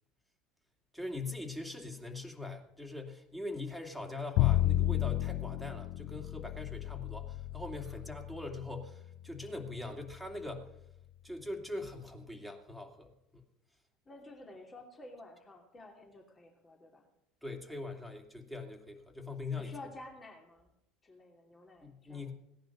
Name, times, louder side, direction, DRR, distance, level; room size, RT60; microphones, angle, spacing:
voice 1, 0.9-10.7 11.2-13.4 17.4-19.7 21.8-22.3, left 2 dB, ahead, 2 dB, 2.6 m, -42 dB
Bowed string instrument, 4.4-10.5, left 14 dB, 60° left, 0.5 m, -33 dB
voice 2, 14.1-17.1 19.5-20.7 21.0-22.3, left 2 dB, 25° left, 2 dB, 2.8 m, -51 dB
17.0 x 10.5 x 6.1 m, 0.83 s
figure-of-eight pair, 65°, 0 cm